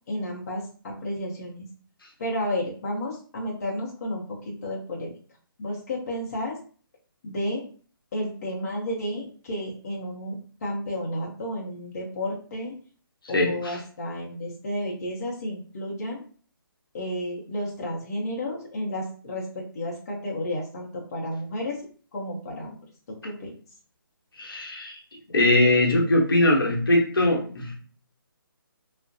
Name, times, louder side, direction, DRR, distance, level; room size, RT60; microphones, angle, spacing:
voice 1, 0.1-1.7 2.2-5.1 5.6-6.6 7.2-7.6 8.1-10.4 10.6-12.8 13.3-16.2 16.9-21.8 22.1-22.8 23.1-23.5, left 1 dB, 40° left, -3 dB, 0.6 m, -32 dB
voice 2, 24.4-25.0 25.3-27.7, left 1 dB, 70° left, -1 dB, 0.9 m, -21 dB
2.3 x 2.0 x 2.6 m, 0.42 s
hypercardioid pair, 155°, 12 cm